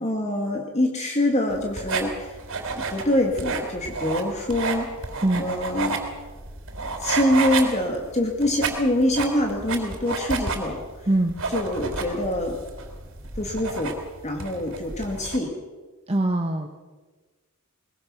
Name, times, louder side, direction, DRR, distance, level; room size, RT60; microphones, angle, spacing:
voice 1, 0.0-2.4 2.7-4.9 5.4-6.0 7.0-11.1 11.5-12.6 13.4-15.6, left 1 dB, 30° left, 2 dB, 2.2 m, -25 dB
sound 1, 1.5-15.4, right 4 dB, 65° right, 3.7 m, -31 dB
voice 2, 11.1-11.4 16.1-16.7, right 1 dB, 30° right, 3 dB, 1.2 m, -22 dB
22.0 x 21.0 x 6.2 m, 1.3 s
head